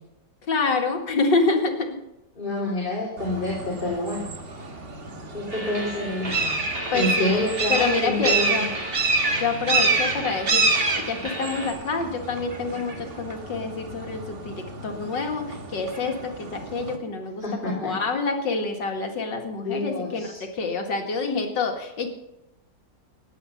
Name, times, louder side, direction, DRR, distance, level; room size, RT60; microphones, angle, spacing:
voice 1, 0.4-2.0 6.9-8.7 9.4-22.1, left 4 dB, 75° left, 3 dB, 2.5 m, -27 dB
voice 2, 2.4-4.4 5.3-6.6 6.9-8.7 17.4-17.9 19.6-20.4, left 1 dB, 25° left, -4 dB, 3.5 m, -28 dB
sound 1, 3.2-17.0, right 3 dB, 35° right, 1.5 m, -28 dB
sound 2, 5.5-11.7, right 1 dB, 20° right, 2.5 m, -35 dB
16.0 x 10.0 x 5.7 m, 0.90 s
omnidirectional pair, 2.0 m